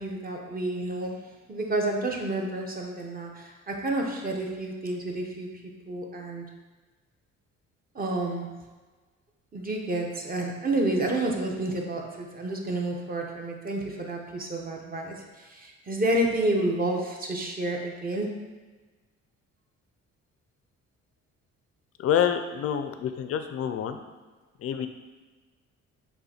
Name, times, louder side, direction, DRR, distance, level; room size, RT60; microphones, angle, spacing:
voice 1, 0.0-5.6 5.9-6.5 7.9-8.5 9.5-18.4, right 1 dB, 30° right, 0 dB, 0.8 m, -30 dB
voice 2, 22.0-24.0 24.6-24.9, left 9 dB, 50° left, 8 dB, 0.4 m, -27 dB
5.5 x 2.3 x 4.3 m, 1.3 s
cardioid pair, 90°, 30 cm